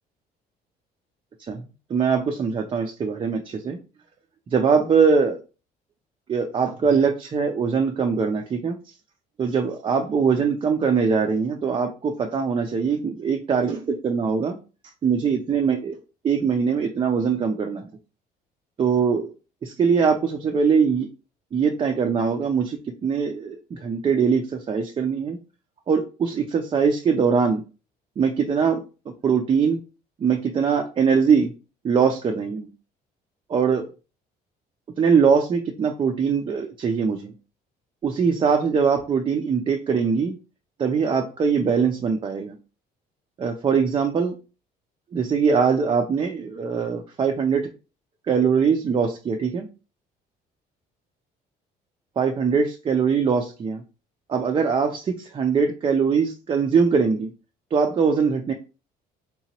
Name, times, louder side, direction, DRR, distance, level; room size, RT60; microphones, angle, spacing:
voice 1, 1.9-3.8 4.5-5.4 6.3-8.8 9.4-14.6 15.0-16.0 16.2-17.9 18.8-19.3 19.6-21.1 21.5-25.4 25.9-27.6 28.2-28.8 29.2-29.8 30.2-31.5 31.8-32.7 33.5-33.9 35.0-37.3 38.0-40.3 40.8-42.6 43.4-44.4 45.1-47.7 48.3-49.7 52.2-53.8 54.3-57.3 57.7-58.5, right 6 dB, 30° right, 3 dB, 0.4 m, -22 dB
3.7 x 2.8 x 2.8 m, 0.33 s
cardioid pair, 110°, 17 cm